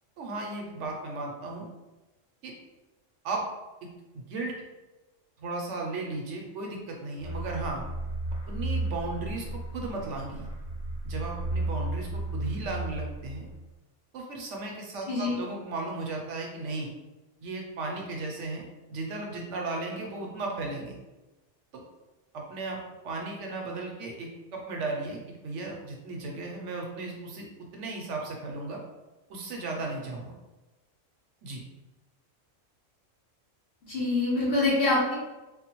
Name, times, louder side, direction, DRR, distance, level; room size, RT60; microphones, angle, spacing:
voice 1, 0.2-1.7 2.4-2.5 3.2-3.5 3.8-3.9 4.1-4.5 5.4-7.8 8.5-10.5 11.0-13.5 14.1-16.9 17.4-20.9 21.7-21.8 22.3-22.8 23.0-27.5 27.7-28.8 29.3-30.3 31.4-31.6, right 3 dB, 70° right, 0 dB, 0.9 m, -35 dB
sound 1, 7.2-13.7, right 2 dB, 85° left, 1.1 m, -34 dB
voice 2, 15.1-15.4 33.9-35.1, left 2 dB, 50° left, -7 dB, 1.1 m, -25 dB
3.4 x 2.1 x 2.9 m, 1.1 s
omnidirectional pair, 1.3 m